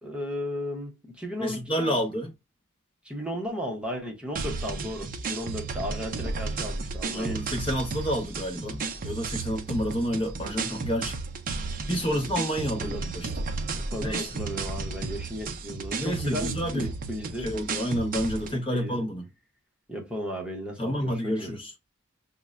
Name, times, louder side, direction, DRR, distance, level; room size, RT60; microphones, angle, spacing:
voice 1, 0.0-2.0 3.0-7.4 12.8-13.1 13.8-17.5 18.4-19.0 19.9-21.6, equal, 5° right, 0.8 m, -35 dB
voice 2, 1.4-2.3 7.1-11.2 11.9-13.3 14.0-14.3 16.0-16.9 17.4-19.3 20.8-21.7, equal, 25° left, 1.1 m, -29 dB
sound 1, 4.4-18.6, right 4 dB, 40° right, 0.5 m, -33 dB
5.3 x 2.1 x 2.4 m
head